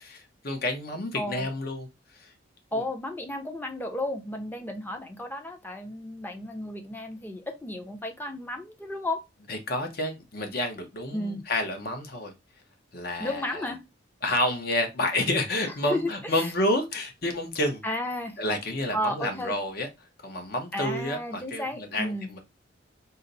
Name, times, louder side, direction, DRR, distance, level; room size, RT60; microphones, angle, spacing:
voice 1, 0.1-1.9 2.1-2.3 2.7-2.8 9.5-12.3 12.9-13.7 14.2-17.8 18.4-22.4, left 1 dB, 55° left, 0.8 m, -29 dB
voice 2, 1.1-1.5 2.7-9.2 11.1-11.4 13.2-13.8 15.9-16.1 16.3-16.5 17.8-18.4 18.9-19.5 20.7-22.3, left 1 dB, 10° left, 0.6 m, -33 dB
4.0 x 2.0 x 3.8 m
head